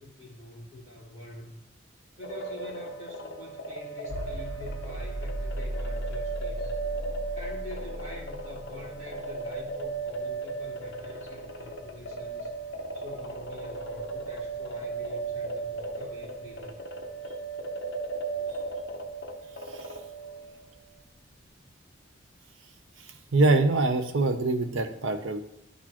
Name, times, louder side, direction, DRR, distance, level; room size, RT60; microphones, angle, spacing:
voice 1, 0.0-1.6 2.2-6.7 7.3-12.5 12.9-16.8, left 2 dB, 30° right, -5 dB, 2.3 m, -46 dB
sound 1, 2.2-20.6, right 3 dB, 60° left, 0.7 m, -36 dB
sound 2, 4.1-20.0, equal, 20° left, 1.4 m, -40 dB
voice 2, 23.0-25.4, right 2 dB, 75° right, 8 dB, 0.7 m, -24 dB
11.0 x 4.2 x 3.0 m, 0.74 s
head